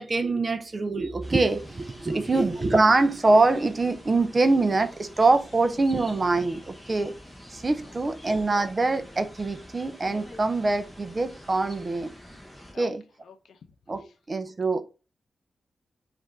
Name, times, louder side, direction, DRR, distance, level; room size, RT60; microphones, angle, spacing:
voice 1, 0.0-7.1 7.5-12.1 12.8-13.0 13.9-14.0 14.3-14.8, right 3 dB, 25° right, 0.5 m, -24 dB
sound 1, 1.2-12.7, left 1 dB, 10° left, 1.0 m, -47 dB
voice 2, 2.1-2.4 7.8-7.9 12.7-12.9 13.2-13.6 14.0-14.1, left 6 dB, 85° left, 0.6 m, -48 dB
5.3 x 2.5 x 3.4 m
wide cardioid pair, 160°, 0 cm